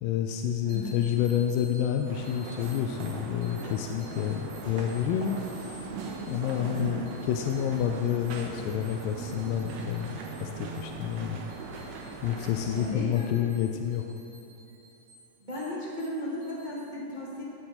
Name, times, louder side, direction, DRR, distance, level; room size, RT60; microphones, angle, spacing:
voice 1, 0.0-5.4 6.3-10.1 10.4-11.4 12.2-14.0, left 9 dB, 85° left, 4 dB, 2.2 m, -29 dB
voice 2, 0.6-0.9 6.7-7.0 12.7-13.4 15.4-17.4, equal, 45° right, -8 dB, 0.6 m, -35 dB
sound 1, 0.7-16.7, right 1 dB, 85° right, 3.7 m, -55 dB
sound 2, 2.1-12.9, right 3 dB, 70° right, 1.6 m, -40 dB
17.5 x 6.4 x 4.4 m, 2.9 s
omnidirectional pair, 3.9 m